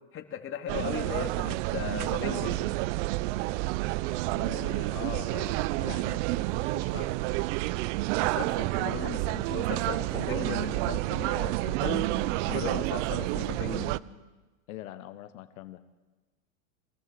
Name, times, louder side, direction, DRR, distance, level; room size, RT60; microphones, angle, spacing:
voice 1, 0.1-2.6 8.2-12.1 12.4-14.0, left 8 dB, 30° left, 5 dB, 3.0 m, -37 dB
sound 1, 0.7-14.0, right 19 dB, 60° right, 0.8 m, -29 dB
voice 2, 4.4-7.2 14.7-15.8, left 13 dB, 80° left, 11 dB, 1.5 m, -43 dB
26.0 x 18.0 x 7.9 m, 1.2 s
supercardioid pair, 130°, 41 cm